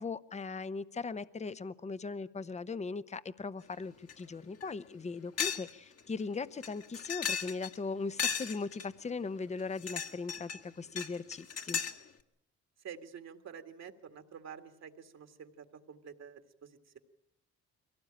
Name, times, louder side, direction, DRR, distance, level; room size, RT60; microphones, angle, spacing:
voice 1, 0.0-11.8, left 4 dB, 25° left, 15 dB, 0.8 m, -39 dB
sound 1, 4.1-4.2 4.6-4.7 5.4-5.7 6.0-6.1 6.6-7.8 8.2-8.9 9.6-10.6 11.0-12.0, left 7 dB, 55° left, 1.9 m, -35 dB
voice 2, 12.8-17.0, right 7 dB, 60° right, 6 dB, 2.0 m, -49 dB
23.0 x 17.5 x 8.8 m, 0.80 s
cardioid pair, 90°, 30 cm